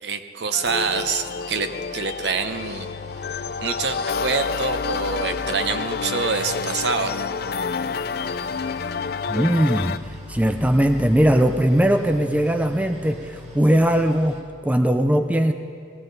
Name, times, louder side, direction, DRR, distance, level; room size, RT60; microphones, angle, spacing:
voice 1, 0.0-2.9 3.3-7.1, right 5 dB, 70° right, 8 dB, 0.8 m, -26 dB
sound 1, 0.5-10.0, left 5 dB, 55° left, 0.4 m, -29 dB
Boat Water vehicle, 0.6-14.4, equal, 40° right, 1.8 m, -46 dB
sound 2, 2.3-14.3, left 3 dB, 85° left, 0.8 m, -41 dB
voice 2, 9.3-10.0 10.3-14.4 14.6-15.5, right 1 dB, 10° right, 6 dB, 0.5 m, -19 dB
19.0 x 15.0 x 4.0 m, 2.3 s
head